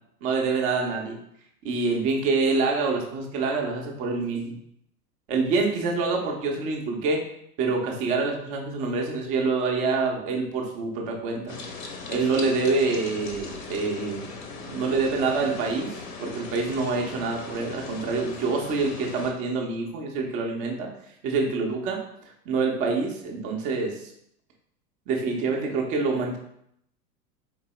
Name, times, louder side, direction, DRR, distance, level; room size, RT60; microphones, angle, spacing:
voice 1, 0.2-1.2 1.6-4.6 5.3-7.2 7.6-11.5 12.1-14.3 14.7-20.9 21.2-22.0 22.5-24.1 25.1-26.4, right 4 dB, 20° right, 1 dB, 0.3 m, -26 dB
sound 1, 11.5-19.3, left 3 dB, 55° left, 0.8 m, -38 dB
3.9 x 3.7 x 3.0 m, 0.73 s
figure-of-eight pair, 95°, 49 cm